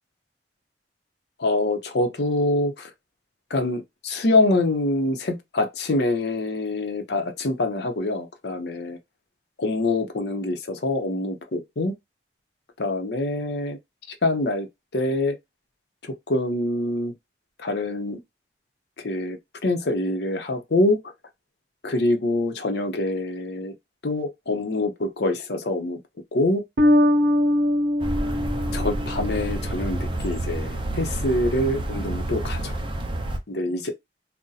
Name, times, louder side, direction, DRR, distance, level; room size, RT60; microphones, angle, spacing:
voice 1, 1.4-2.9 3.5-9.0 9.6-11.9 12.8-13.8 14.1-14.7 14.9-15.4 16.3-17.1 17.6-18.2 19.0-21.0 21.8-23.7 24.0-26.0 26.3-26.6 28.7-32.8 33.5-33.9, left 2 dB, 65° left, 0.7 m, -25 dB
Bass guitar, 26.8-29.8, left 1 dB, 75° right, 0.7 m, -22 dB
sound 1, 28.0-33.4, right 1 dB, 30° right, 0.5 m, -29 dB
2.6 x 2.1 x 3.9 m
head